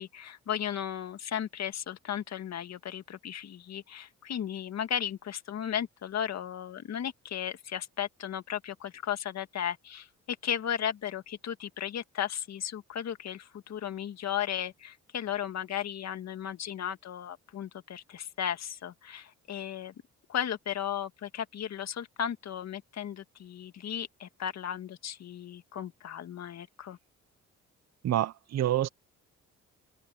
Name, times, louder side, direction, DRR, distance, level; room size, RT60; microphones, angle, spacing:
voice 1, 0.0-19.9 20.3-27.0, left 9 dB, 60° left, 1.8 m, -35 dB
voice 2, 28.0-28.9, right 12 dB, 60° right, 0.9 m, -27 dB
cardioid pair, 90°, 30 cm